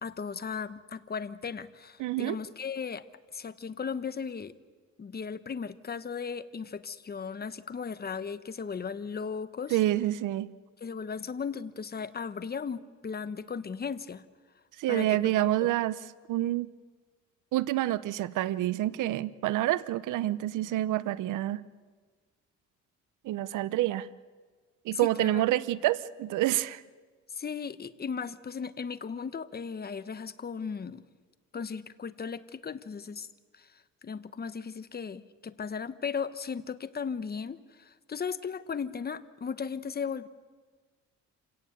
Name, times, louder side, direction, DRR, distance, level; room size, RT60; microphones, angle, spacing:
voice 1, 0.0-3.0 3.3-4.5 5.0-9.8 10.8-14.3 14.9-15.5 24.9-25.3 27.3-31.0 31.5-33.3 33.5-33.7 34.0-40.3, left 6 dB, 30° left, 13 dB, 1.1 m, -36 dB
voice 2, 2.0-2.4 9.7-10.5 14.8-16.0 16.3-16.7 17.5-21.6 23.2-24.1 24.8-26.8, right 15 dB, 85° right, 17 dB, 0.8 m, -28 dB
27.0 x 17.5 x 8.0 m, 1.5 s
cardioid pair, 90°, 30 cm